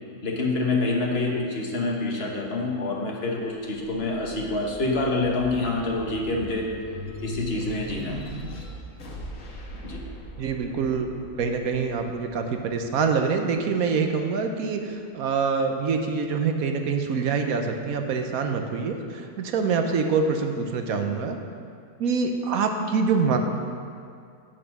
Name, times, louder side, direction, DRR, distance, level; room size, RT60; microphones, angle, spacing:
voice 1, 0.2-6.7 7.2-8.2 9.8-10.0, left 2 dB, 45° left, -1 dB, 1.3 m, -27 dB
sound 1, 3.8-14.2 14.7-15.9, equal, 60° left, 1.5 m, -40 dB
voice 2, 10.4-11.1 11.4-21.4 22.0-23.4, right 5 dB, 70° right, 4 dB, 1.2 m, -25 dB
8.2 x 6.3 x 5.9 m, 2.3 s
omnidirectional pair, 1.6 m